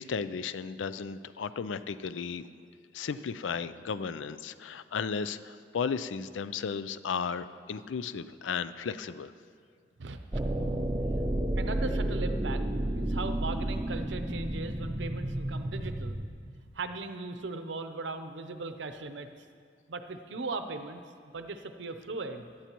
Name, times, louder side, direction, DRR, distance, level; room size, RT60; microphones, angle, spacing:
voice 1, 0.0-2.5 2.9-9.3, left 6 dB, 85° left, 14 dB, 0.4 m, -34 dB
voice 2, 10.0-10.4 11.6-12.6 12.9-16.2 16.7-19.3 19.9-22.5, right 3 dB, 75° right, 8 dB, 0.7 m, -38 dB
sound 1, 10.3-16.3, right 1 dB, 20° right, 0.6 m, -31 dB
17.5 x 11.5 x 3.0 m, 2.1 s
head